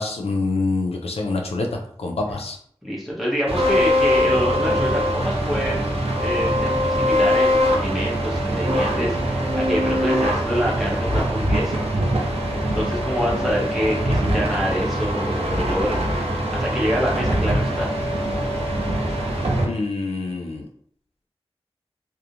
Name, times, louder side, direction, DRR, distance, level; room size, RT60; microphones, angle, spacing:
voice 1, 0.0-2.6 19.6-20.7, left 3 dB, 90° left, 1 dB, 0.4 m, -26 dB
voice 2, 2.8-11.9 12.6-17.9, equal, ahead, -3 dB, 0.8 m, -26 dB
sound 1, 3.5-19.7, equal, 85° right, 0.6 m, -22 dB
2.4 x 2.1 x 2.8 m, 0.62 s
wide cardioid pair, 65°, 10 cm